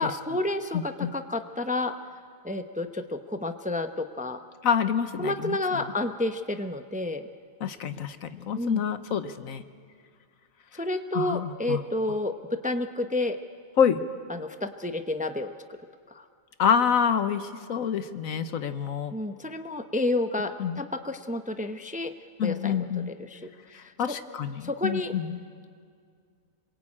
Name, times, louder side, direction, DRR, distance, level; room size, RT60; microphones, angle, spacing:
voice 1, 0.0-1.9 2.4-4.4 5.2-7.2 8.5-8.8 10.7-13.4 14.3-15.5 16.1-16.2 19.1-22.1 22.4-24.2 24.6-25.1, left 2 dB, 5° right, 7 dB, 0.7 m, -30 dB
voice 2, 0.7-1.1 4.6-5.6 7.6-9.6 11.1-11.8 13.8-14.0 16.6-19.1 20.6-20.8 22.4-23.1 23.7-25.4, left 7 dB, 75° left, 11 dB, 1.4 m, -27 dB
27.0 x 22.5 x 8.7 m, 2.2 s
omnidirectional pair, 1.4 m